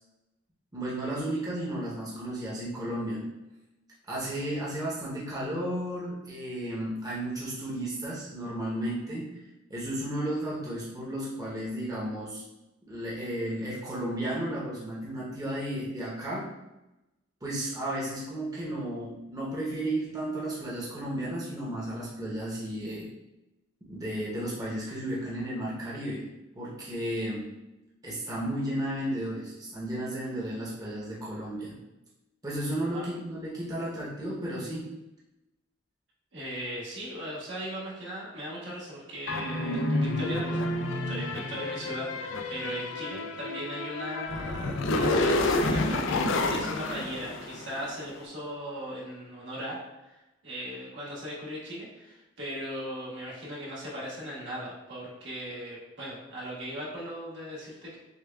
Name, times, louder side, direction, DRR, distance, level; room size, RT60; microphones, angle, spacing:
voice 1, 0.7-3.2 4.1-9.3 9.7-12.4 12.9-16.5 17.4-23.1 23.8-26.2 26.5-27.4 28.0-31.8 32.4-34.9, right 1 dB, 20° right, -7 dB, 0.7 m, -33 dB
voice 2, 36.3-58.0, equal, 70° right, -7 dB, 1.5 m, -38 dB
sound 1, 39.3-48.0, left 2 dB, 85° left, 0.4 m, -29 dB
6.4 x 2.3 x 2.2 m, 0.97 s
head